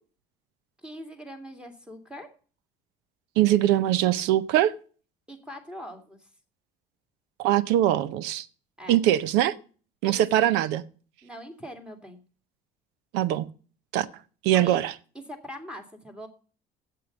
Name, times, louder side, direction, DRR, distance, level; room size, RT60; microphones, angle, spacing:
voice 1, 0.8-2.3 5.3-6.3 8.8-9.0 10.0-10.5 11.2-12.2 14.5-14.8 15.1-16.3, equal, 5° right, 2.3 m, -42 dB
voice 2, 3.4-4.7 7.4-8.4 8.9-9.5 10.0-10.8 13.1-13.5 13.9-14.1 14.4-14.9, right 13 dB, 85° right, 0.7 m, -22 dB
8.5 x 7.8 x 7.9 m
cardioid pair, 110°, 17 cm